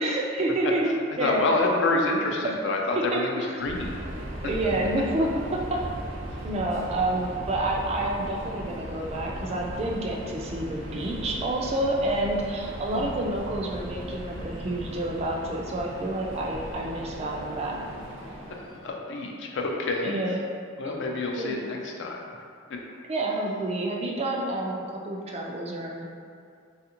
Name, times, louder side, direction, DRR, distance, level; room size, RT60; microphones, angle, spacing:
voice 1, 0.0-1.4 3.1-3.5 4.4-5.8 6.4-17.8 20.0-20.4 21.3-21.5 23.1-26.1, right 1 dB, 30° right, -1 dB, 0.3 m, -29 dB
voice 2, 1.1-4.0 12.9-13.1 18.8-20.2 20.8-22.2 22.7-22.8, left 2 dB, 65° left, 0 dB, 0.4 m, -27 dB
Subway metro underground, 3.6-18.9, equal, 75° right, 0.6 m, -38 dB
3.3 x 2.4 x 2.9 m, 2.3 s
head